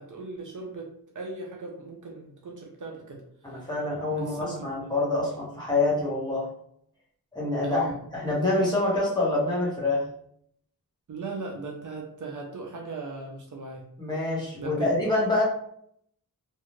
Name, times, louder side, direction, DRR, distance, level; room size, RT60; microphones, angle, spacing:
voice 1, 0.0-3.2 4.2-4.7 7.6-8.0 11.1-13.9 14.6-14.9, right 3 dB, 55° right, 0 dB, 0.5 m, -38 dB
voice 2, 3.4-6.5 7.3-7.8 8.1-10.0 14.0-15.4, left 2 dB, 10° left, -7 dB, 1.0 m, -26 dB
2.6 x 2.3 x 3.1 m, 0.68 s
wide cardioid pair, 170°, 37 cm